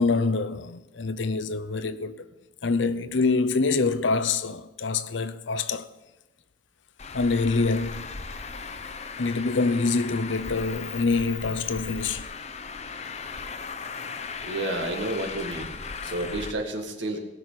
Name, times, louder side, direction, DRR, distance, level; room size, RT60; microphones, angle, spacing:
voice 1, 0.0-2.3 2.6-5.9 7.1-8.1 9.2-12.3 16.0-16.1, left 3 dB, 80° left, 0.7 m, -25 dB
Traffic noise roadway noise, 7.0-16.5, left 5 dB, 35° left, 0.7 m, -37 dB
voice 2, 14.4-15.7 16.1-17.2, right 2 dB, 75° right, 1.9 m, -31 dB
18.5 x 6.2 x 6.8 m
head